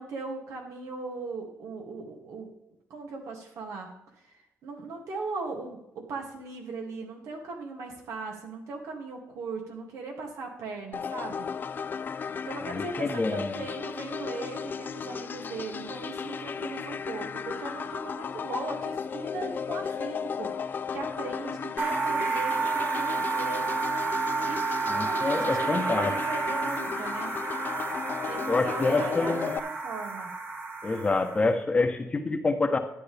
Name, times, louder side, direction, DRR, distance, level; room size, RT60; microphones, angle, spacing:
voice 1, 0.0-2.5 2.9-11.5 12.4-23.7 24.4-27.3 28.3-30.3, right 3 dB, 85° right, 1 dB, 2.4 m, -38 dB
sound 1, 10.9-29.6, left 6 dB, 40° left, 0.5 m, -35 dB
voice 2, 12.6-13.6 24.9-26.1 28.5-29.5 30.8-32.8, left 3 dB, 25° left, 6 dB, 1.1 m, -27 dB
sound 2, 21.8-31.5, right 4 dB, 35° right, 1.4 m, -30 dB
11.5 x 9.4 x 3.4 m, 0.88 s
cardioid pair, 120°, 5 cm